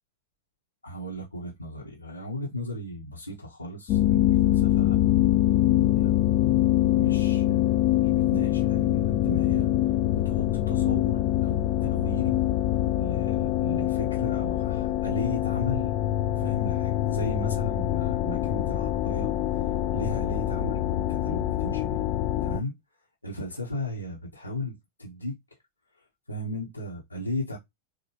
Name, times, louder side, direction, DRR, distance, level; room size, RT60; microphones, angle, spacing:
voice 1, 0.8-5.1 5.9-6.1 6.9-9.7 10.2-12.4 12.9-15.9 16.3-19.3 19.9-22.0 22.4-22.7 23.2-25.3 26.3-27.6, left 1 dB, 85° left, 0.9 m, -36 dB
sound 1, 3.9-22.6, left 13 dB, 40° left, 0.3 m, -24 dB
4.8 x 2.1 x 3.1 m
figure-of-eight pair, 90°, 0 cm